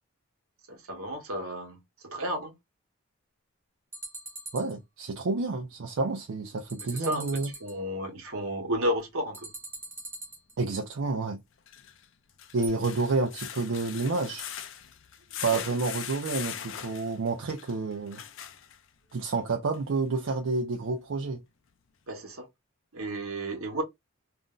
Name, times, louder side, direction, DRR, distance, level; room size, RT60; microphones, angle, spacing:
voice 1, 0.7-2.5 6.8-9.5 15.5-15.7 22.1-22.5 22.9-23.8, equal, 80° right, 1.0 m, -33 dB
sound 1, 3.9-4.7 6.6-7.8 9.3-10.7 12.6-12.7, right 2 dB, 10° right, 0.6 m, -42 dB
voice 2, 4.5-7.5 10.6-11.4 12.5-14.5 15.4-18.2 19.1-21.4, right 3 dB, 65° right, 0.5 m, -29 dB
sound 2, 9.0-9.1 11.5-19.2 19.7-19.8 20.3-20.4, left 10 dB, 65° left, 0.4 m, -41 dB
2.5 x 2.1 x 3.7 m
head